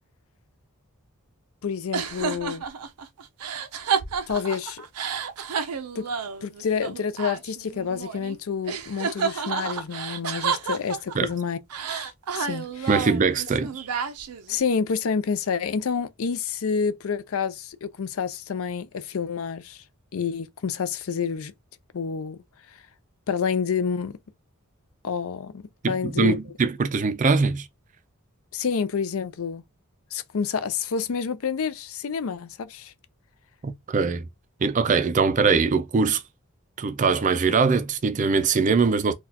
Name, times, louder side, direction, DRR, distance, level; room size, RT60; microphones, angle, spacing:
voice 1, 1.6-2.6 4.3-4.9 6.0-6.1 6.4-11.6 11.9-12.9 14.5-19.8 20.1-21.5 21.9-22.4 23.3-24.2 25.0-26.4 28.5-29.6 30.1-32.9, left 6 dB, 65° left, 0.5 m, -28 dB
sound 1, 1.9-8.4 8.7-11.3 11.7-14.6, right 6 dB, 90° right, 0.5 m, -30 dB
voice 2, 12.9-13.9 25.8-27.7 33.6-34.3 34.6-36.2 36.8-39.1, right 4 dB, 35° right, 0.4 m, -22 dB
3.9 x 2.3 x 2.8 m
head